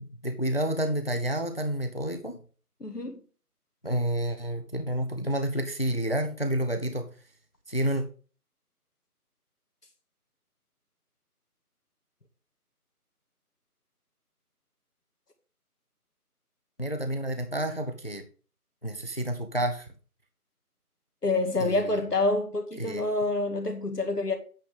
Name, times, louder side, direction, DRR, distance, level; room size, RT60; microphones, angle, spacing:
voice 1, 0.0-2.4 3.8-7.1 7.7-8.0 16.8-18.2 18.8-19.9 21.6-22.1 22.8-23.0, right 1 dB, 40° left, 0.7 m, -29 dB
voice 2, 2.8-3.2 21.2-24.4, left 2 dB, 90° left, 2.2 m, -27 dB
8.5 x 6.2 x 3.7 m
figure-of-eight pair, 175°, 46 cm